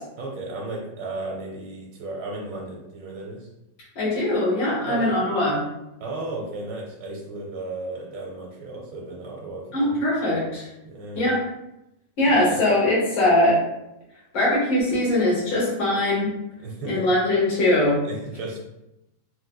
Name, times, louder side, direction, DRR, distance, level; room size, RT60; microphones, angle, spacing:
voice 1, 0.2-3.5 4.8-5.2 6.0-9.9 10.8-11.4 12.3-12.6 16.6-17.2 18.0-18.6, right 2 dB, 80° right, -2 dB, 1.3 m, -34 dB
voice 2, 3.9-5.6 9.7-10.7 11.1-11.4 12.2-13.6 14.3-16.3 16.9-18.0, left 1 dB, 85° left, -7 dB, 1.8 m, -21 dB
4.7 x 2.0 x 2.2 m, 0.90 s
omnidirectional pair, 1.9 m